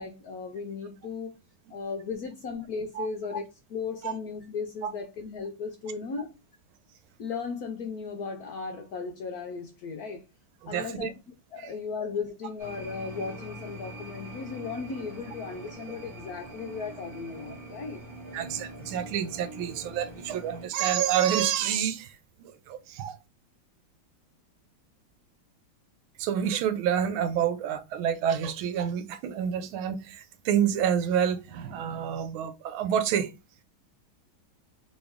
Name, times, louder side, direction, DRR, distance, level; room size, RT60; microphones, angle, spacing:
voice 1, 0.0-1.4 1.7-6.3 7.2-10.2 10.7-11.1 11.5-18.0, left 5 dB, 70° left, 0.9 m, -36 dB
voice 2, 10.6-11.1 11.6-11.7 18.3-23.2 26.2-33.3, right 9 dB, 85° right, 1.5 m, -28 dB
sound 1, 12.6-20.7, right 1 dB, 45° right, 2.4 m, -43 dB
4.2 x 3.1 x 3.5 m
omnidirectional pair, 2.2 m